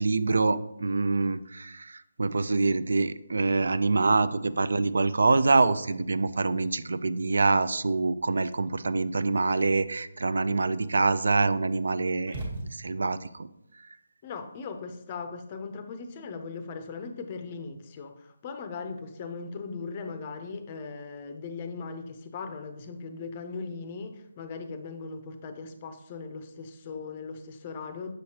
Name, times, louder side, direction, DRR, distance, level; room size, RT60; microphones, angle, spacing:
voice 1, 0.0-1.9 2.2-13.5, right 3 dB, 75° right, 14 dB, 0.4 m, -25 dB
sound 1, 12.3-13.3, right 2 dB, 40° right, 1.3 m, -37 dB
voice 2, 14.2-28.1, left 4 dB, 25° left, 8 dB, 0.5 m, -39 dB
6.4 x 6.3 x 2.8 m, 0.81 s
hypercardioid pair, 170°, 0 cm